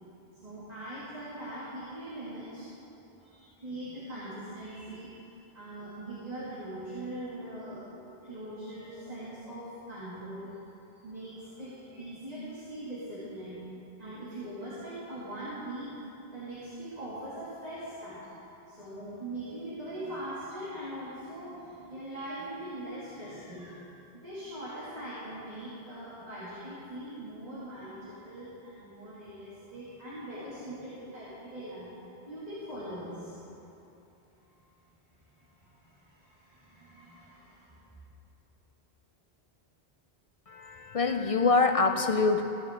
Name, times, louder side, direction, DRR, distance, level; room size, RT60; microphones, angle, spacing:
voice 1, 0.4-5.3 5.5-10.5 11.0-13.6 14.0-18.3 18.7-23.8 24.1-31.9 32.3-33.4 34.4-34.6 35.3-37.8, right 1 dB, 40° right, -11 dB, 2.5 m, -41 dB
voice 2, 40.5-42.4, left 4 dB, 45° left, 5 dB, 0.5 m, -25 dB
15.5 x 11.0 x 3.7 m, 3.0 s
omnidirectional pair, 1.0 m